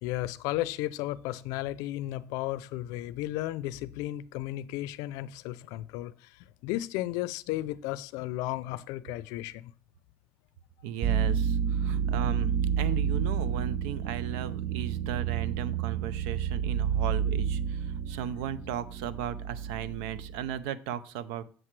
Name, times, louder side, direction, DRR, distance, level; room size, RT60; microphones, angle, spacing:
voice 1, 0.0-9.7, left 15 dB, 80° left, 0.4 m, -34 dB
voice 2, 10.8-21.4, right 9 dB, 85° right, 0.5 m, -36 dB
sound 1, 11.0-20.6, right 8 dB, 50° right, 0.7 m, -30 dB
7.7 x 7.5 x 3.2 m
supercardioid pair, 90°, 6 cm